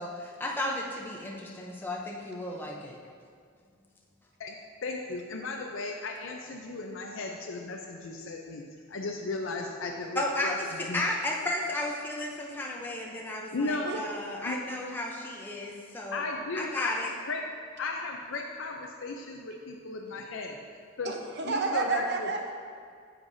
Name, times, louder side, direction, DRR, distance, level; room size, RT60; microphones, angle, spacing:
voice 1, 0.0-2.9 10.2-16.2 16.5-17.1, left 1 dB, 10° left, -2 dB, 0.6 m, -33 dB
voice 2, 4.8-8.6 8.9-11.0 13.5-13.9 14.5-14.6 16.1-17.4 17.8-20.6 21.0-21.1 21.5-22.3, left 3 dB, 70° left, 1 dB, 0.5 m, -35 dB
voice 3, 21.0-22.5, right 4 dB, 55° right, 3 dB, 0.8 m, -31 dB
9.5 x 7.3 x 2.7 m, 2.1 s
head